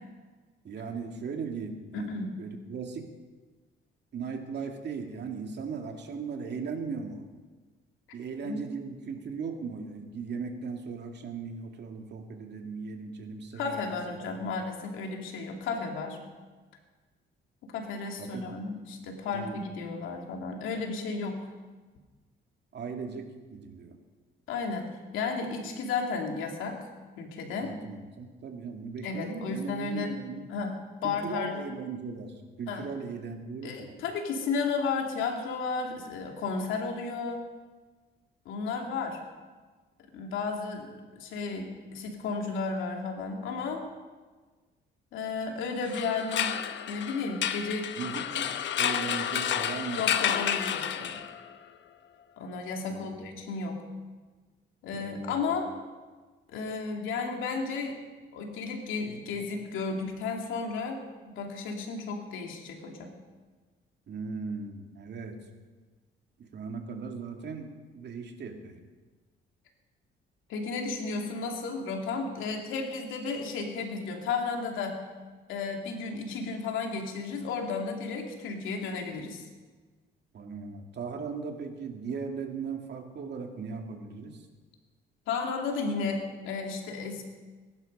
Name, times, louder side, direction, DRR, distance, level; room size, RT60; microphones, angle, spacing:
voice 1, 0.6-3.1 4.1-7.2 8.1-14.5 18.2-18.6 19.3-19.6 22.7-24.0 27.6-30.5 31.0-34.0 48.0-50.0 52.9-53.1 54.9-55.5 64.1-65.4 66.4-68.8 80.3-84.5, right 5 dB, 60° right, 4 dB, 2.3 m, -38 dB
voice 2, 1.9-2.4 8.4-8.6 13.5-16.2 17.7-21.5 24.5-24.9 25.1-26.9 27.2-27.7 29.0-30.1 30.5-30.8 31.0-31.6 32.7-32.8 33.6-37.4 38.4-39.2 40.1-43.8 45.1-46.6 46.9-47.9 50.0-51.2 52.4-53.8 54.8-55.7 56.5-57.9 58.3-63.1 70.5-75.0 75.5-79.4 85.3-87.2, left 4 dB, 90° left, 2 dB, 2.7 m, -33 dB
sound 1, 45.8-51.5, left 9 dB, 65° left, 1.0 m, -30 dB
21.0 x 11.5 x 5.4 m, 1.3 s
cardioid pair, 90°, 20 cm